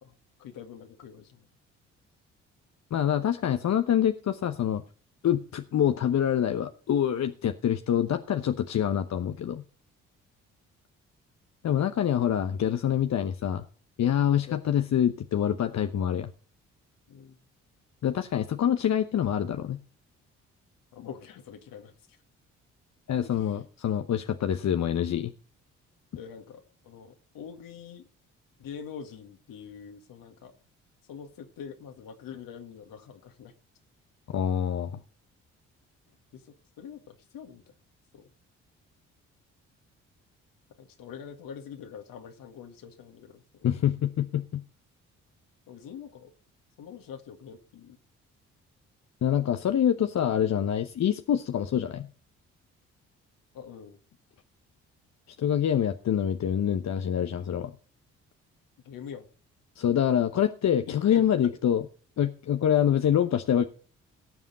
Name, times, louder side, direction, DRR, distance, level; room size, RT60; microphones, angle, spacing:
voice 1, 0.4-1.5 14.5-14.6 17.1-17.4 20.9-21.9 23.4-23.5 26.1-28.1 28.6-30.5 31.1-33.5 36.3-37.6 38.1-38.3 40.8-43.7 45.7-46.3 46.8-48.0 53.5-54.0 58.8-59.3 61.1-61.6, left 7 dB, 65° left, 6 dB, 2.1 m, -44 dB
voice 2, 2.9-4.8 5.2-9.6 11.6-13.6 14.0-16.3 18.0-19.8 23.1-25.3 34.3-35.0 43.6-44.6 49.2-52.1 55.4-57.7 59.8-61.8 62.2-63.7, left 9 dB, 50° left, 8 dB, 1.0 m, -26 dB
18.0 x 7.3 x 4.1 m, 0.41 s
hypercardioid pair, 45°, 36 cm